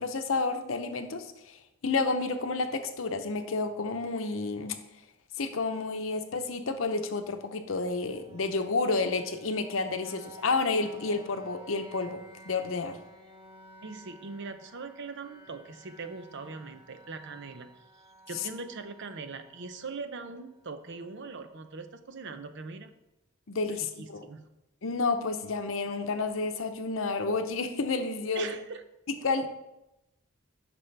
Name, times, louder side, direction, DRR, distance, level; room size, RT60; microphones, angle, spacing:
voice 1, 0.0-1.6 1.8-4.8 5.4-12.2 12.5-13.0 23.5-24.3 24.8-28.6 29.2-29.5, left 3 dB, 70° left, 8 dB, 0.7 m, -30 dB
sound 1, 7.9-21.8, right 1 dB, 15° right, 2.7 m, -54 dB
voice 2, 13.8-17.7 18.3-22.9 23.8-24.5 28.3-28.8, right 4 dB, 60° right, 9 dB, 0.6 m, -41 dB
9.6 x 6.0 x 3.3 m, 0.93 s
head